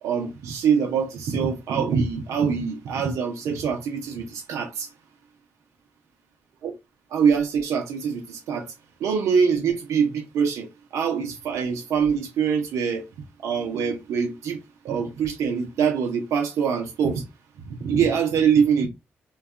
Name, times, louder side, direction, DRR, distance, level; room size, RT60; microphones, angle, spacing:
voice 1, 0.0-4.9 6.6-6.7 7.1-8.7 9.0-10.7 10.9-13.0 13.4-14.6 14.8-17.2 17.6-18.9, right 6 dB, 80° right, 0.6 m, -24 dB
2.6 x 2.2 x 2.4 m
supercardioid pair, 50°, 5 cm